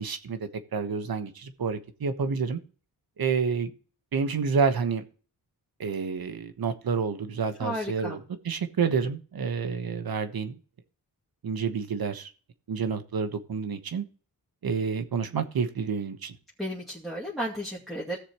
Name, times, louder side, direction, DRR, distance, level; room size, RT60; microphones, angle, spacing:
voice 1, 0.0-2.6 3.2-3.7 4.1-5.0 5.8-8.2 8.4-10.6 11.4-12.3 12.7-14.0 14.6-16.3, right 5 dB, 60° right, 9 dB, 1.3 m, -29 dB
voice 2, 7.6-8.2 16.6-18.2, equal, ahead, -6 dB, 2.4 m, -33 dB
16.5 x 6.8 x 3.0 m, 0.39 s
cardioid pair, 80°, 40 cm